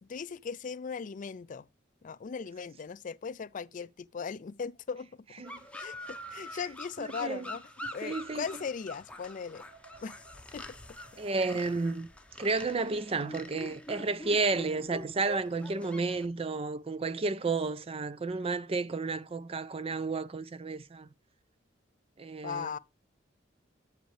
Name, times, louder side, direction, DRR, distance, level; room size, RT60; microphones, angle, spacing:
voice 1, 0.0-1.7 2.0-5.1 5.7-7.6 7.9-9.6 10.0-10.2 10.5-10.7 22.4-22.8, left 6 dB, 45° left, 0.4 m, -38 dB
sound 1, 5.4-16.2, left 1 dB, 5° left, 0.8 m, -45 dB
voice 2, 7.0-7.4 8.0-8.4 11.2-12.1 12.4-21.1 22.2-22.7, right 3 dB, 30° right, 0.5 m, -32 dB
sound 2, 8.8-15.7, right 4 dB, 85° right, 4.1 m, -59 dB
8.9 x 7.9 x 3.3 m
head